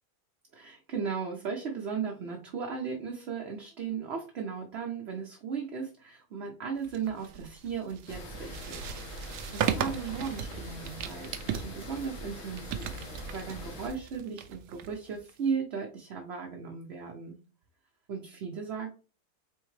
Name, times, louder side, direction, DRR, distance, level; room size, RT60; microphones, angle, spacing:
voice 1, 0.5-8.8 9.1-17.4 18.1-18.9, right 6 dB, 55° right, 1 dB, 0.8 m, -36 dB
sound 1, 6.8-15.5, right 9 dB, 90° right, 1.2 m, -37 dB
sound 2, 8.1-13.9, equal, 55° left, 1.5 m, -43 dB
4.6 x 3.5 x 3.1 m, 0.34 s
omnidirectional pair, 1.7 m